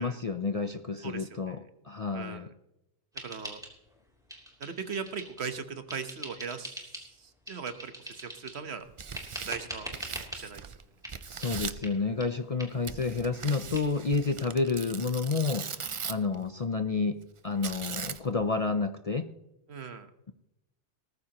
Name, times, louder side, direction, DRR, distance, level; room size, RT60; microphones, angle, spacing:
voice 1, 0.0-2.5 11.3-15.7 16.0-19.3, left 4 dB, 40° left, 8 dB, 0.6 m, -30 dB
voice 2, 1.0-1.6 2.1-2.5 3.1-3.6 4.6-8.9 9.4-9.9 10.3-10.7 12.0-12.1 19.7-20.1, right 6 dB, 60° right, 9 dB, 1.3 m, -39 dB
sound 1, 3.2-4.0 4.3-5.5 5.9-7.1 7.5-8.6 9.1-10.4 11.0-11.2 11.4-11.5 11.8-11.9 12.2-12.3 12.6-12.7 13.0-13.1 13.4-13.5 13.7-13.8, equal, 5° right, 2.9 m, -42 dB
Tearing, 8.8-10.8 11.1-11.9 12.8-16.3 17.6-18.4, right 6 dB, 45° right, 0.4 m, -39 dB
19.0 x 14.0 x 2.9 m, 0.86 s
omnidirectional pair, 1.2 m